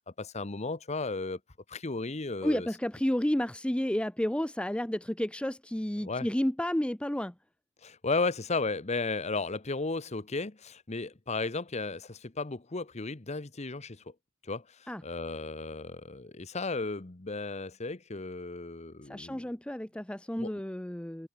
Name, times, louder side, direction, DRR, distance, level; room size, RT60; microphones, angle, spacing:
voice 1, 0.2-1.4 1.7-2.7 6.0-6.3 7.8-14.0 14.4-19.5 20.4-20.5, left 3 dB, 30° left, 1.0 m, -34 dB
voice 2, 2.4-7.3 14.9-15.0 19.0-21.3, left 1 dB, 5° left, 0.5 m, -31 dB
head